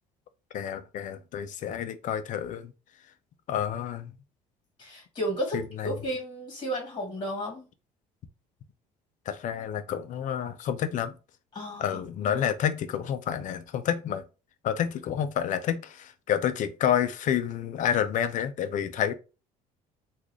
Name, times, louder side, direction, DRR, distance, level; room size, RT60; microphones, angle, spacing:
voice 1, 0.5-2.7 3.5-4.1 5.5-5.9 9.3-11.2 11.8-14.2 14.6-19.1, left 9 dB, 55° left, 0.6 m, -29 dB
voice 2, 4.8-7.7 11.5-12.4, equal, 30° left, 1.8 m, -33 dB
3.6 x 2.5 x 3.1 m
supercardioid pair, 95°, 15 cm